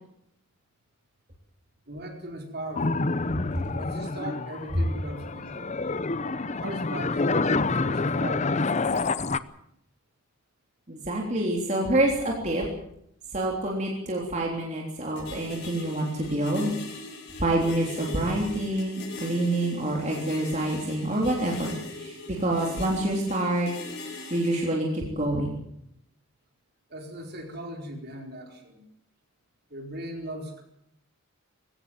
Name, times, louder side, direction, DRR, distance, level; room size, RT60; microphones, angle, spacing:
voice 1, 1.9-3.1 3.7-5.7 6.5-9.1 26.9-28.8 29.7-30.6, right 1 dB, 50° right, 2 dB, 4.6 m, -39 dB
sound 1, 2.8-9.4, left 3 dB, 35° left, 0.7 m, -27 dB
voice 2, 10.9-12.7 13.3-16.7 17.4-23.7 24.3-25.6, right 1 dB, 35° right, -1 dB, 3.5 m, -27 dB
sound 2, 15.2-24.7, left 2 dB, 55° left, 5.9 m, -41 dB
22.0 x 17.0 x 7.6 m, 0.75 s
head